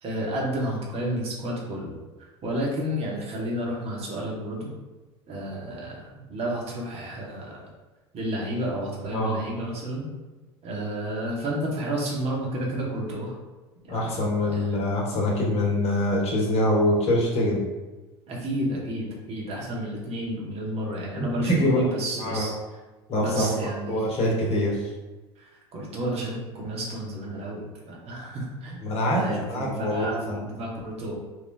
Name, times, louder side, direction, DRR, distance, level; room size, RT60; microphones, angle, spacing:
voice 1, 0.0-1.9 2.4-4.7 5.3-7.7 8.1-10.1 10.6-13.3 13.9-14.1 14.5-14.7 18.3-22.5 23.2-24.0 25.4-31.2, right 1 dB, 45° right, -3 dB, 1.0 m, -31 dB
voice 2, 13.9-17.6 21.1-21.9 22.2-22.5 23.1-23.5 23.9-24.9 28.8-29.2 29.5-30.4, left 1 dB, 45° left, -2 dB, 1.0 m, -24 dB
2.7 x 2.3 x 3.6 m, 1.2 s
hypercardioid pair, 75°, 14 cm